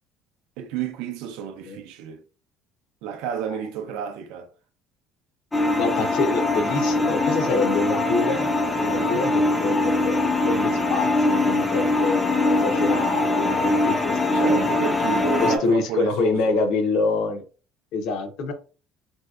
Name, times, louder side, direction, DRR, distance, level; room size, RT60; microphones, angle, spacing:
voice 1, 0.6-2.2 3.0-4.5 9.0-9.3 14.3-16.6, right 8 dB, 80° right, 0.5 m, -31 dB
sound 1, 5.5-15.6, left 2 dB, 10° left, 0.4 m, -22 dB
voice 2, 5.8-10.2 10.5-14.7 15.4-17.4 17.9-18.5, left 3 dB, 60° left, 0.6 m, -26 dB
3.2 x 2.7 x 2.3 m
cardioid pair, 180°, 0 cm